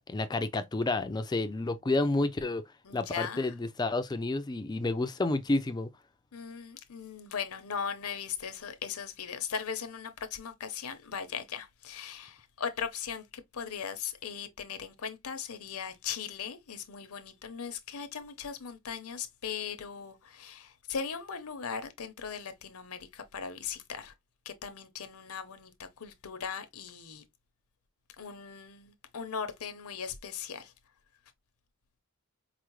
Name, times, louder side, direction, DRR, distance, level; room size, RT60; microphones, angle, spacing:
voice 1, 0.1-2.7 2.9-5.9, left 2 dB, 20° left, 0.3 m, -30 dB
voice 2, 2.8-3.5 6.3-24.1 24.5-27.2 28.2-30.7, left 7 dB, 80° left, 0.7 m, -39 dB
4.8 x 2.0 x 3.0 m
head